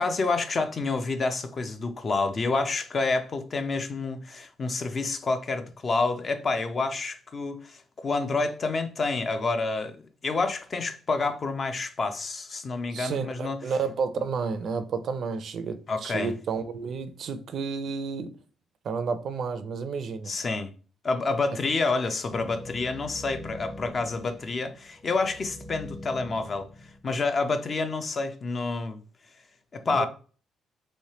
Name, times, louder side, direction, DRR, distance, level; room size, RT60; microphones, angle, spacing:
voice 1, 0.0-10.0 10.2-13.6 15.9-16.3 20.3-20.7 21.0-26.7 27.0-29.0 29.7-30.1, left 3 dB, 40° left, 0.6 m, -28 dB
voice 2, 12.9-18.4 18.8-20.4 29.9-30.1, right 5 dB, 60° right, 0.5 m, -31 dB
sound 1, 22.3-27.4, left 1 dB, 25° left, 1.0 m, -43 dB
3.2 x 3.2 x 2.8 m
cardioid pair, 90°, 0 cm